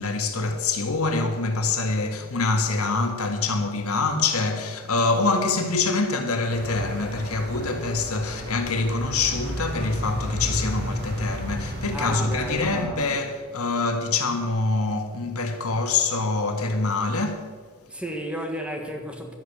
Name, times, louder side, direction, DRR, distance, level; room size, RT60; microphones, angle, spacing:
voice 1, 0.0-17.5, left 3 dB, 85° left, 1.7 m, -25 dB
sound 1, 6.5-12.9, equal, 45° right, 2.5 m, -33 dB
voice 2, 11.9-13.1 17.9-19.4, equal, 5° right, 1.5 m, -32 dB
11.5 x 10.0 x 6.9 m
head